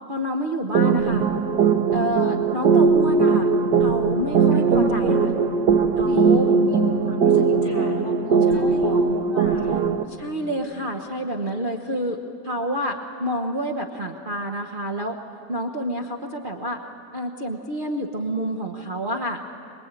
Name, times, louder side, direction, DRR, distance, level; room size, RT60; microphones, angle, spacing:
voice 1, 0.1-1.3 1.9-3.5 3.8-5.3 6.0-6.6 8.5-8.9 9.7-9.8 10.1-15.2 15.5-16.8 17.1-19.4, equal, 35° right, 1 dB, 1.1 m, -28 dB
sound 1, 0.7-10.0, right 5 dB, 75° right, 1.6 m, -19 dB
voice 2, 6.0-9.9, left 2 dB, 50° left, -3 dB, 4.8 m, -34 dB
24.5 x 21.5 x 9.0 m, 2.7 s
omnidirectional pair, 1.8 m